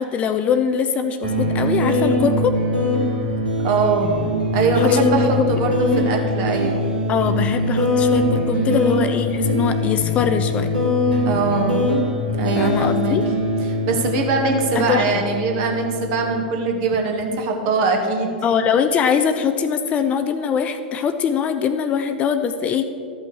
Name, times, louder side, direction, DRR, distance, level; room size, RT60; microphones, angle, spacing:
voice 1, 0.0-2.6 4.7-5.6 7.1-10.7 12.5-13.2 14.8-15.1 18.4-22.9, left 7 dB, 25° left, 9 dB, 0.6 m, -22 dB
sound 1, 1.2-16.3, left 1 dB, 85° right, 3.4 m, -22 dB
voice 2, 3.6-4.3 4.5-6.8 8.5-8.9 11.2-11.9 12.4-13.2 13.9-18.4, right 4 dB, 45° right, 2 dB, 2.0 m, -22 dB
13.5 x 6.0 x 7.1 m, 2.4 s
figure-of-eight pair, 95°, 5 cm